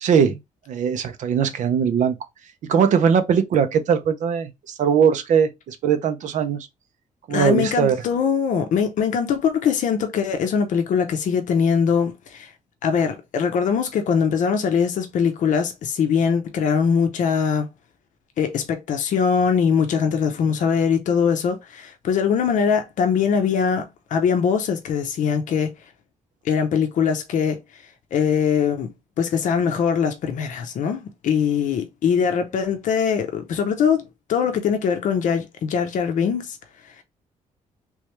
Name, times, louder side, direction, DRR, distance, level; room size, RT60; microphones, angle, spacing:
voice 1, 0.0-0.4 0.7-2.2 2.6-6.7 7.3-8.0, right 7 dB, 65° right, 0.7 m, -20 dB
voice 2, 7.3-12.5 12.8-17.7 18.4-25.7 26.4-27.6 28.1-36.6 36.8-36.9, left 6 dB, 65° left, 0.7 m, -22 dB
3.5 x 3.2 x 3.2 m
cardioid pair, 155°, 14 cm